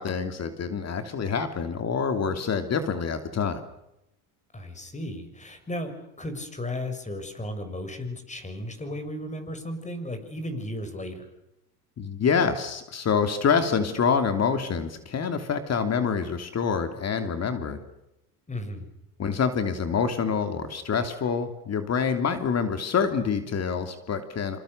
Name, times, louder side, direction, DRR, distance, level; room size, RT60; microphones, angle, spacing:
voice 1, 0.0-3.6 12.0-17.8 19.2-24.6, left 6 dB, 35° left, 8 dB, 3.0 m, -26 dB
voice 2, 4.5-11.3 18.5-18.9, left 1 dB, 15° left, 9 dB, 6.6 m, -35 dB
27.0 x 27.0 x 6.8 m, 0.88 s
supercardioid pair, 95°, 46 cm